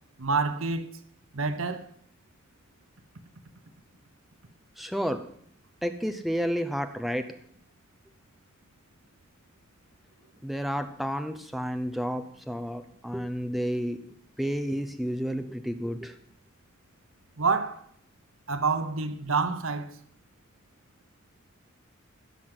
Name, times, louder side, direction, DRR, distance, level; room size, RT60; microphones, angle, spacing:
voice 1, 0.2-0.9 1.3-1.8 17.4-17.9 18.5-20.0, right 4 dB, 85° right, 1.1 m, -27 dB
voice 2, 4.8-5.2 5.8-7.3 10.4-14.0 14.4-16.1, equal, ahead, 0.7 m, -31 dB
15.5 x 6.0 x 7.8 m
head